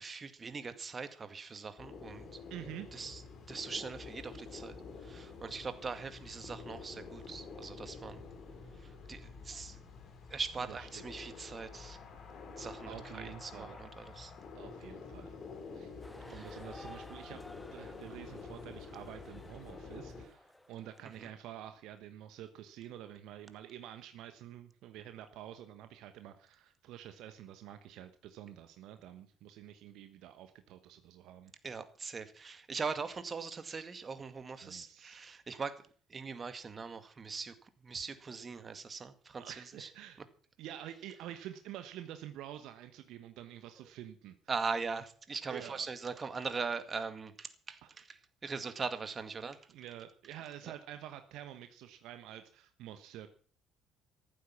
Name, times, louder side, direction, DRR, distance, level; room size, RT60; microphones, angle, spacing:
voice 1, 0.0-2.4 2.9-3.2 3.5-4.8 5.0-8.2 8.8-9.8 10.3-12.0 12.6-14.3 16.3-16.6 21.2-21.3 31.6-35.8 36.1-37.5 37.8-39.9 44.5-49.6, right 5 dB, 35° right, 11 dB, 2.1 m, -41 dB
sound 1, 1.8-20.2, left 4 dB, 50° left, 4.3 m, -49 dB
voice 2, 2.5-2.9 10.7-11.0 12.9-13.8 14.5-15.4 15.7-17.4 17.7-31.5 34.6-35.2 39.4-40.2 40.6-44.3 45.5-45.9 47.8-48.0 49.7-53.3, right 11 dB, 65° right, 9 dB, 1.2 m, -48 dB
sound 2, 16.0-21.2, left 1 dB, 10° left, 1.5 m, -54 dB
14.5 x 12.5 x 6.0 m, 0.43 s
figure-of-eight pair, 55°, 0 cm